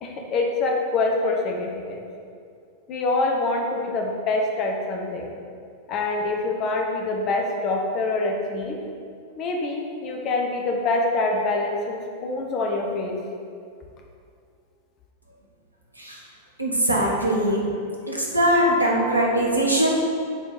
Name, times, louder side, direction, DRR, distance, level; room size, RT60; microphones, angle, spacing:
voice 1, 0.0-2.1 2.9-5.3 5.9-8.8 9.4-13.2, left 2 dB, 35° left, 1 dB, 1.2 m, -25 dB
voice 2, 16.6-17.6 18.1-20.0, right 1 dB, 85° right, -2 dB, 1.3 m, -21 dB
6.6 x 4.4 x 6.6 m, 2.4 s
figure-of-eight pair, 90°, 0 cm